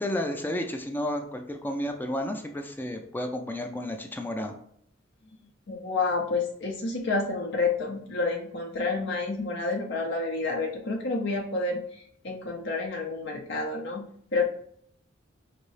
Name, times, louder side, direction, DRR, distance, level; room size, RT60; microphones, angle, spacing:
voice 1, 0.0-4.6, left 1 dB, 10° left, 4 dB, 0.3 m, -32 dB
voice 2, 5.7-14.1 14.3-14.4, left 3 dB, 65° left, 0 dB, 0.6 m, -29 dB
5.1 x 2.7 x 3.2 m, 0.66 s
head